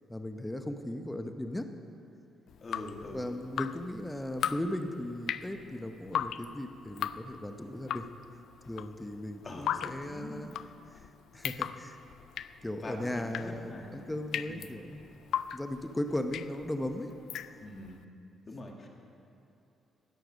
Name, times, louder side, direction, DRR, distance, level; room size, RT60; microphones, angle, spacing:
voice 1, 0.1-1.7 3.0-8.1 8.7-10.5 10.9-11.0 11.3-12.0 12.6-15.0 15.5-17.1, left 1 dB, 10° left, 6 dB, 0.8 m, -37 dB
Drip, 2.5-17.9, left 9 dB, 75° left, 0.3 m, -38 dB
voice 2, 2.6-3.4 9.4-10.4 12.8-14.1 14.5-14.8 17.6-18.0 18.5-18.9, left 1 dB, 35° left, 0 dB, 2.0 m, -44 dB
18.5 x 6.6 x 6.3 m, 2.7 s
cardioid pair, 90°, 0 cm